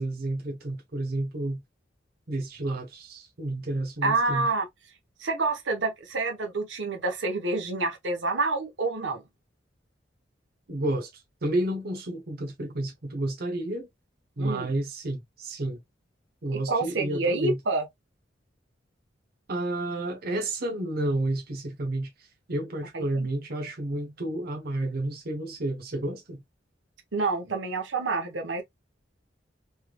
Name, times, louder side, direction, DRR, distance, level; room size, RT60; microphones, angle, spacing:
voice 1, 0.0-1.6 2.3-4.5 10.7-13.9 14.4-15.8 16.4-17.6 19.5-26.4, right 1 dB, 55° right, 0.8 m, -31 dB
voice 2, 4.0-4.7 5.2-9.2 14.4-14.7 16.5-17.8 22.9-23.3 27.1-28.6, right 3 dB, 85° right, 1.1 m, -28 dB
3.4 x 3.2 x 2.2 m
head